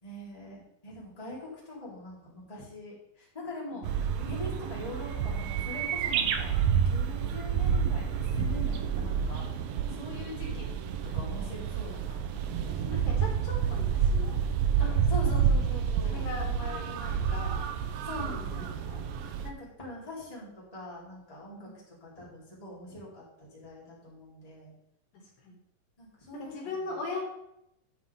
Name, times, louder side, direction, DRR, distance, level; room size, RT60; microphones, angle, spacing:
voice 1, 0.0-6.6 6.9-9.5 9.9-10.7 11.1-12.9 14.8-16.3 18.0-18.9 19.4-24.7 26.0-26.9, left 1 dB, 10° left, -6 dB, 3.3 m, -43 dB
sound 1, 3.8-19.5, right 7 dB, 90° right, 2.5 m, -29 dB
voice 2, 12.9-14.4 16.0-17.7 18.3-19.1 21.6-21.8 25.4-25.6 26.3-27.2, left 3 dB, 75° left, 0 dB, 3.7 m, -40 dB
9.6 x 9.4 x 3.6 m, 0.81 s
omnidirectional pair, 4.0 m